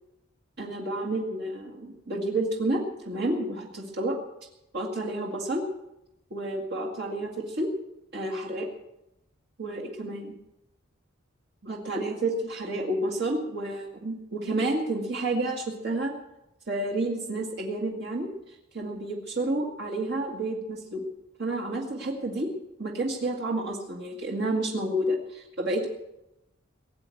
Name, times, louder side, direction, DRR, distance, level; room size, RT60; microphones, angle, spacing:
voice 1, 0.6-4.2 4.7-5.6 6.3-7.7 8.1-8.7 9.6-10.3 11.6-16.1 16.7-21.0 21.4-22.5 22.8-25.9, right 1 dB, 55° right, -1 dB, 2.0 m, -30 dB
19.0 x 8.4 x 7.8 m, 0.90 s
head